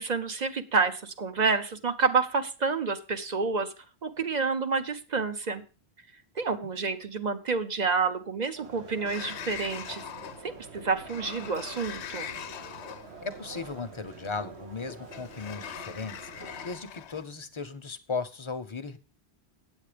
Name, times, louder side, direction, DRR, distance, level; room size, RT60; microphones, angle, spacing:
voice 1, 0.0-3.7 4.0-5.6 6.4-10.0 10.4-12.4, right 4 dB, 45° right, 9 dB, 0.8 m, -29 dB
sound 1, 8.6-16.7, right 5 dB, 90° right, 1.5 m, -47 dB
Sliding door, 9.1-17.2, left 9 dB, 80° left, 0.9 m, -42 dB
voice 2, 13.2-19.0, left 4 dB, 30° left, 9 dB, 0.7 m, -36 dB
8.4 x 8.3 x 5.0 m, 0.34 s
omnidirectional pair, 1.1 m